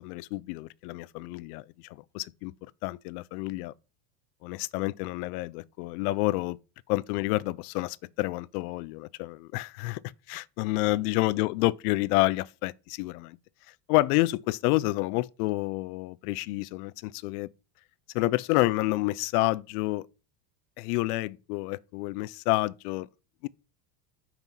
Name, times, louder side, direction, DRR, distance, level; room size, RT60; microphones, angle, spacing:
voice 1, 0.0-1.6 2.1-2.5 2.8-3.7 4.4-6.6 6.9-10.0 10.3-13.4 13.9-17.5 18.1-20.1 20.8-23.1 23.4-23.5, left 19 dB, 70° left, 0.6 m, -29 dB
5.8 x 4.5 x 5.3 m
supercardioid pair, 120°, 48 cm